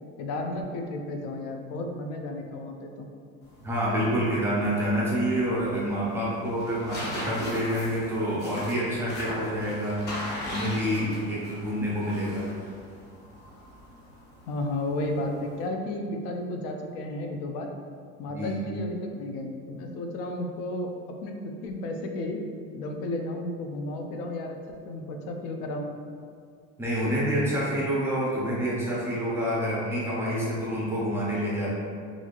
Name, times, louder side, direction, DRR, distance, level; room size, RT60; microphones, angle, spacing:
voice 1, 0.2-3.1 14.5-17.7 18.2-20.9 21.2-22.4 22.7-24.6 24.9-25.9, left 1 dB, 75° left, 3 dB, 0.5 m, -33 dB
sound 1, 3.4-15.6, left 1 dB, 35° left, 0.6 m, -40 dB
voice 2, 3.6-10.0 10.5-12.5 18.3-18.6 26.8-31.7, equal, 10° right, -7 dB, 0.4 m, -27 dB
3.0 x 2.4 x 2.4 m, 2.1 s
cardioid pair, 180°, 29 cm